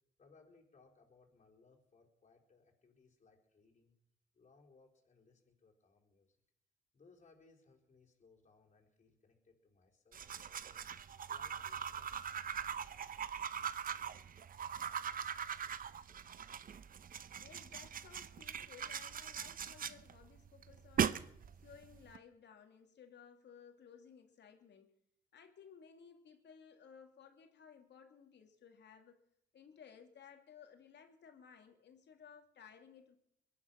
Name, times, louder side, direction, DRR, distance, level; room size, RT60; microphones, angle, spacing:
voice 1, 0.2-3.9 4.3-6.4 6.9-10.9 11.3-12.2, left 4 dB, 35° left, -1 dB, 4.5 m, -67 dB
sound 1, 10.1-22.2, right 8 dB, 45° right, 0.7 m, -41 dB
voice 2, 17.4-21.3 21.6-24.9 25.3-29.2 29.5-33.2, left 7 dB, 60° left, 5 dB, 2.8 m, -58 dB
22.5 x 10.5 x 5.9 m, 0.76 s
cardioid pair, 90°, 20 cm